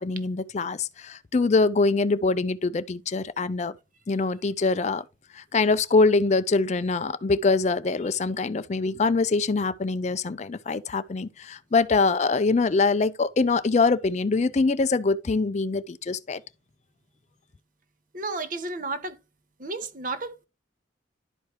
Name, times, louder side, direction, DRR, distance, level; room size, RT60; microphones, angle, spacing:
voice 1, 0.0-3.7 4.1-5.0 5.3-16.4, left 3 dB, 35° left, 0.4 m, -24 dB
voice 2, 18.1-19.2 19.6-20.5, right 3 dB, 45° right, 0.9 m, -32 dB
11.5 x 4.8 x 3.0 m
head